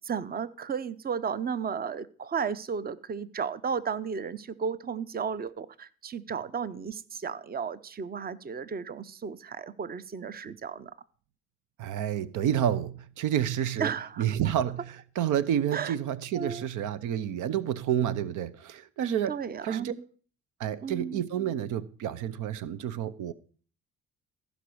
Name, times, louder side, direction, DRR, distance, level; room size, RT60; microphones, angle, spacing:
voice 1, 0.0-10.9 13.8-14.4 15.7-15.9 16.3-16.7 19.3-20.0 20.8-21.2, right 6 dB, 30° right, 0.7 m, -34 dB
voice 2, 11.8-13.9 14.2-19.3 19.6-19.9 20.6-23.3, right 10 dB, 85° right, 0.7 m, -29 dB
15.0 x 5.2 x 6.3 m
cardioid pair, 90°, 30 cm